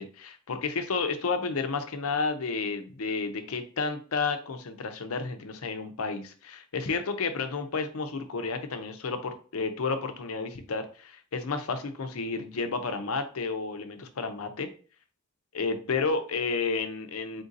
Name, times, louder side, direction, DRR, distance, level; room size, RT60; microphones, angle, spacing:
voice 1, 0.0-14.7 15.5-17.4, left 4 dB, 90° left, 8 dB, 0.6 m, -31 dB
3.7 x 2.6 x 3.8 m, 0.41 s
head